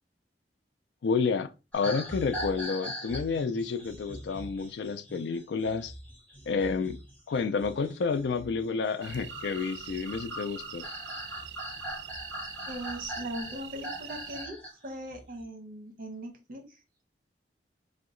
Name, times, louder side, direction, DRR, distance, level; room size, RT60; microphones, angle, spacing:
voice 1, 1.0-5.9 6.5-7.0 7.3-10.9, left 5 dB, 75° left, 0.4 m, -30 dB
sound 1, 1.7-14.7 15.1-15.4, equal, 10° left, 1.1 m, -41 dB
sound 2, 9.0-14.5, right 10 dB, 75° right, 0.3 m, -44 dB
voice 2, 12.7-14.6 14.8-16.8, right 1 dB, 55° right, 0.8 m, -39 dB
2.8 x 2.2 x 3.7 m
head